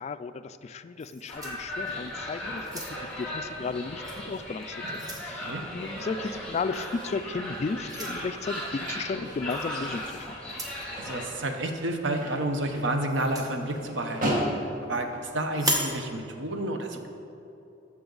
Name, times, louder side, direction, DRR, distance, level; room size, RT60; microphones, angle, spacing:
voice 1, 0.0-10.3, left 4 dB, 35° left, 11 dB, 0.3 m, -34 dB
sound 1, 1.0-2.1 2.6-3.2 4.0-4.2 4.6-5.3 6.7-7.0 7.9-8.2 9.5-9.7 10.4-10.9 13.1-13.5 15.5-16.0, right 1 dB, 20° right, 1.0 m, -34 dB
sound 2, 1.1-15.6, equal, 45° right, 1.7 m, -39 dB
sound 3, 1.3-11.3, left 1 dB, 5° left, 1.9 m, -37 dB
voice 2, 5.0-5.6 10.9-14.4 14.9-15.1 15.3-17.1, right 1 dB, 75° right, 5 dB, 0.9 m, -30 dB
14.0 x 6.0 x 3.9 m, 2.9 s
head